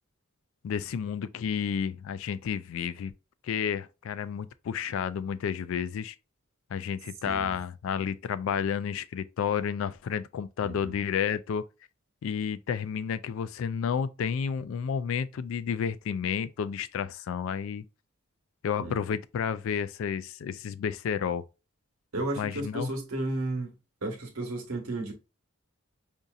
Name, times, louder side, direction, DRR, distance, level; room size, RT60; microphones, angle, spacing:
voice 1, 0.6-3.1 3.4-6.2 6.7-11.6 12.2-17.8 18.6-21.5 22.4-22.9, left 7 dB, 70° left, 0.3 m, -31 dB
voice 2, 10.6-10.9 18.8-19.0 22.1-23.7 24.0-25.1, right 2 dB, 80° right, 1.1 m, -33 dB
5.0 x 2.7 x 2.3 m
head